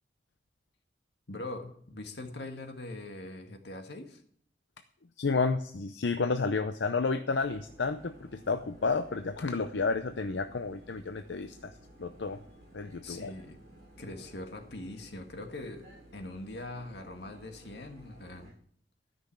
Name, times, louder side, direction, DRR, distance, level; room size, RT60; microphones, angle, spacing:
voice 1, 1.3-4.2 13.0-13.6 14.0-15.9 16.1-18.5, left 2 dB, 70° left, 4 dB, 1.8 m, -42 dB
voice 2, 5.2-12.4 12.7-13.3, left 4 dB, 90° left, 8 dB, 0.7 m, -31 dB
sound 1, 7.4-18.5, right 1 dB, 35° right, 7.6 m, -55 dB
13.0 x 6.3 x 8.5 m, 0.62 s
head